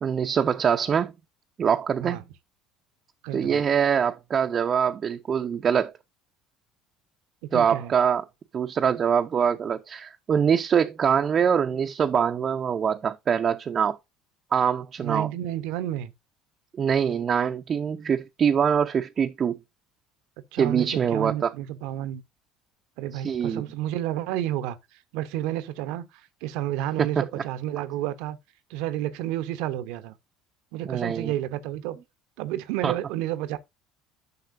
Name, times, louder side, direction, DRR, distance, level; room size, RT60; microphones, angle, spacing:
voice 1, 0.0-1.1 1.6-2.2 3.3-5.9 7.5-8.2 8.5-14.0 14.5-15.3 16.8-19.6 20.6-21.5 23.1-23.6 27.0-27.1 27.4-27.5 30.8-31.3 32.8-32.9, right 7 dB, 40° right, 0.8 m, -24 dB
voice 2, 3.2-3.6 7.5-7.9 15.0-16.1 20.5-22.2 23.0-24.8 25.1-26.1 26.4-28.4 28.7-30.1 30.7-32.0 32.4-33.6, right 13 dB, 65° right, 1.0 m, -30 dB
10.5 x 6.0 x 2.6 m
hypercardioid pair, 65°, 0 cm